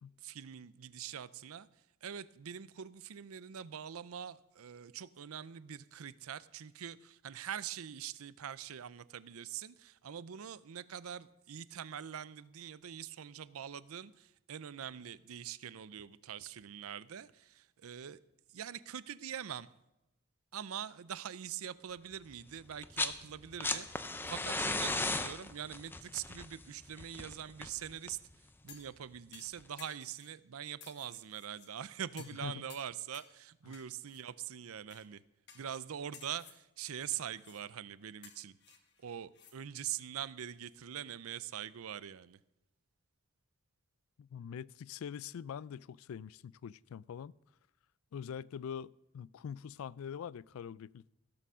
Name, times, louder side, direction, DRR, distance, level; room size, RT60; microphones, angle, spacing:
voice 1, 0.2-1.7 2.0-18.2 18.5-19.7 20.5-28.2 28.6-35.2 35.5-38.6 39.0-42.4, right 9 dB, 90° right, 0.5 m, -44 dB
sound 1, 22.7-23.2 23.4-28.3 29.6-29.7, left 3 dB, 10° left, 0.4 m, -36 dB
sound 2, 28.7-29.0 29.3-30.3 30.8-31.7 32.2-32.4 32.7-33.3 33.7-34.2 34.9-35.1 35.5-35.8 36.1-36.6 37.1-37.6 38.2-39.6 39.9-40.0, left 7 dB, 50° left, 1.4 m, -56 dB
voice 2, 32.2-32.6 33.7-33.8 44.2-47.3 48.1-51.1, left 8 dB, 80° left, 0.3 m, -44 dB
16.0 x 6.9 x 6.2 m
head